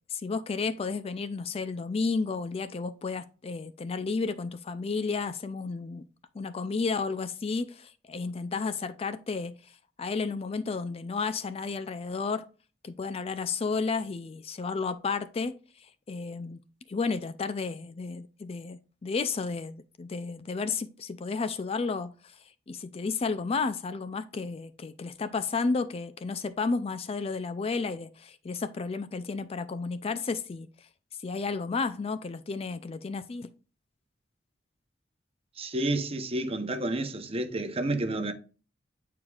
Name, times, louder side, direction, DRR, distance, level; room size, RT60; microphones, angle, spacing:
voice 1, 0.1-6.0 6.3-9.6 10.0-12.4 12.8-16.6 16.9-22.4 22.7-30.7 31.2-33.5, left 4 dB, 35° left, 0.4 m, -32 dB
voice 2, 35.6-38.3, right 1 dB, 35° right, 0.8 m, -30 dB
8.9 x 4.7 x 2.4 m
head